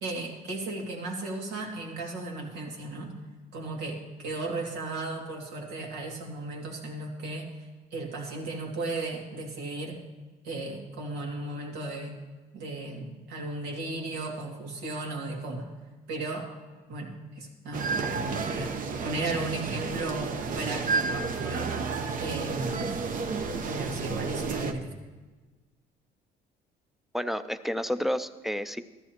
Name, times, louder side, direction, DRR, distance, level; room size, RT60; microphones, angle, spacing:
voice 1, 0.0-3.1 3.5-10.0 10.4-12.2 12.5-15.7 16.1-16.5 16.9-21.8 22.2-23.0 23.6-24.9, right 2 dB, 85° right, 0 dB, 2.4 m, -35 dB
sound 1, 17.7-24.7, right 4 dB, 50° right, 0.9 m, -31 dB
voice 2, 27.1-28.8, equal, ahead, 11 dB, 0.5 m, -30 dB
14.5 x 13.5 x 3.0 m, 1.3 s
cardioid pair, 110°, 17 cm